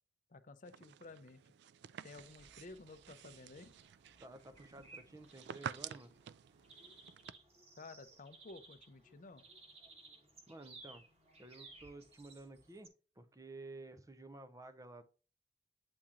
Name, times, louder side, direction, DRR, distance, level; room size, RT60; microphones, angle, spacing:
voice 1, 0.3-1.4 2.0-3.7 7.8-9.4, left 3 dB, 45° left, 0.6 m, -53 dB
sound 1, 0.6-7.3, right 8 dB, 65° right, 0.3 m, -50 dB
sound 2, 2.2-12.9, right 3 dB, 35° right, 1.5 m, -60 dB
voice 2, 4.2-6.1 10.5-11.0 11.4-12.9 13.2-15.0, right 2 dB, 20° right, 0.6 m, -52 dB
8.6 x 2.9 x 3.7 m
head